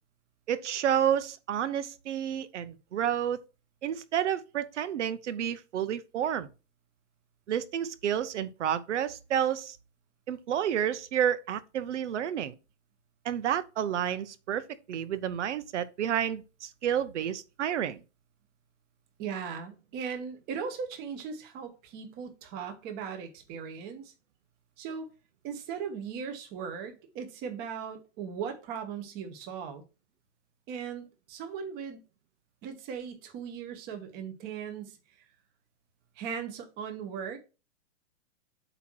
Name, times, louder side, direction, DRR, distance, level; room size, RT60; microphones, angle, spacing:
voice 1, 0.5-3.4 3.8-6.5 7.5-9.8 10.3-12.5 13.2-18.0, right 9 dB, 75° right, 0.9 m, -30 dB
voice 2, 19.2-24.1 24.8-25.1 25.4-29.8 30.7-32.0 32.6-35.0 36.2-37.4, right 7 dB, 25° right, 1.2 m, -38 dB
8.0 x 3.0 x 6.2 m
hypercardioid pair, 155°, 35 cm